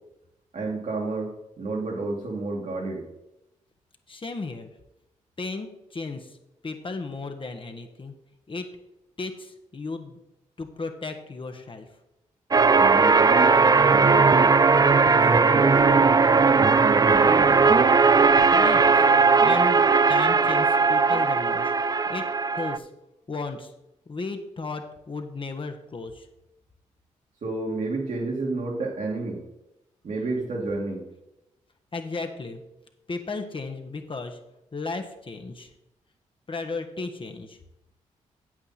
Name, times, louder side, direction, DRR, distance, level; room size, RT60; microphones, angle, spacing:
voice 1, 0.5-3.0 12.7-13.6 13.9-14.5 15.0-16.0 16.6-17.6 27.4-29.4 30.0-31.0, right 3 dB, 60° right, -1 dB, 2.4 m, -30 dB
voice 2, 4.1-4.7 5.4-6.3 6.6-8.1 8.5-8.7 9.2-10.2 10.6-11.9 18.5-19.0 19.4-19.8 20.1-21.7 22.1-22.3 22.5-22.9 23.3-23.7 24.1-26.3 31.9-32.6 33.1-34.4 34.7-35.7 36.5-37.6, left 3 dB, 40° left, 5 dB, 1.3 m, -34 dB
sound 1, 12.5-22.8, right 4 dB, 25° right, 0.4 m, -18 dB
8.8 x 8.2 x 4.2 m, 0.90 s
supercardioid pair, 45°, 14 cm